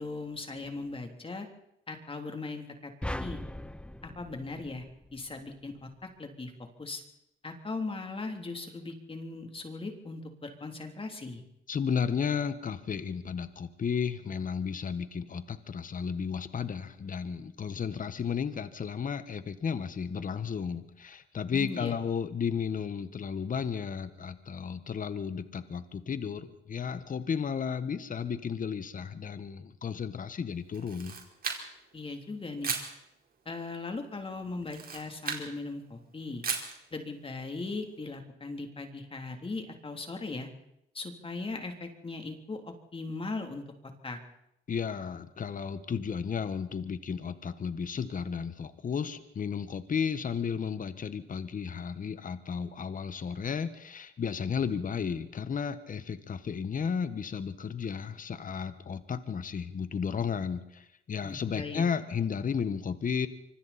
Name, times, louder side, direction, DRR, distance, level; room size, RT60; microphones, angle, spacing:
voice 1, 0.0-1.5 1.9-2.9 3.2-3.4 4.0-4.8 5.1-6.5 6.8-7.0 7.4-11.4 21.5-21.9 31.9-32.7 33.4-36.4 36.9-40.5 40.9-43.6 44.0-44.2 61.2-61.8, left 3 dB, 25° left, 4 dB, 3.4 m, -38 dB
sound 1, 3.0-5.4, left 1 dB, 5° left, 0.8 m, -39 dB
voice 2, 11.7-31.2 44.7-63.3, left 6 dB, 45° left, 11 dB, 1.5 m, -33 dB
Camera, 30.7-31.9 32.6-32.9 34.6-35.5 36.4-36.8, right 5 dB, 50° right, 4.5 m, -35 dB
26.0 x 24.5 x 4.4 m, 0.81 s
cardioid pair, 90°, 20 cm